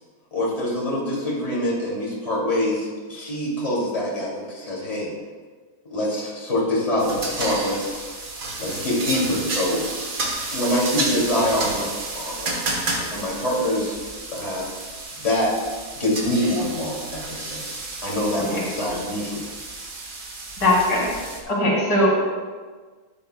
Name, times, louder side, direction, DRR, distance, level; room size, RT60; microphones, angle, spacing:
voice 1, 0.3-5.1 5.9-8.1 8.6-9.8 10.5-13.9 14.3-14.9 15.2-15.5 16.0-19.5, left 1 dB, 25° left, -5 dB, 2.5 m, -25 dB
sound 1, 7.0-21.4, right 2 dB, 60° right, 1.6 m, -31 dB
voice 2, 20.6-21.1 21.5-22.2, left 1 dB, 75° left, -3 dB, 2.6 m, -19 dB
12.5 x 9.3 x 2.2 m, 1.5 s
omnidirectional pair, 1.7 m